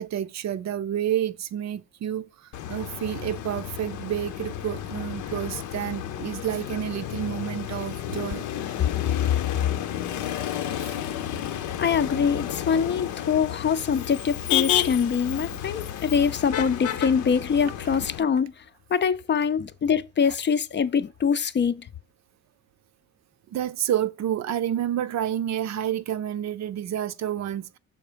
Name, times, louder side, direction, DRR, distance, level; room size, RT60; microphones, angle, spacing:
voice 1, 0.0-2.3 2.7-8.4 16.1-16.2 23.5-27.8, right 10 dB, 65° right, 0.6 m, -29 dB
Motor vehicle (road), 2.5-18.2, left 11 dB, 80° left, 0.7 m, -31 dB
voice 2, 11.8-18.5 18.9-21.8, left 6 dB, 35° left, 0.5 m, -24 dB
6.4 x 3.8 x 5.0 m
cardioid pair, 90°, 30 cm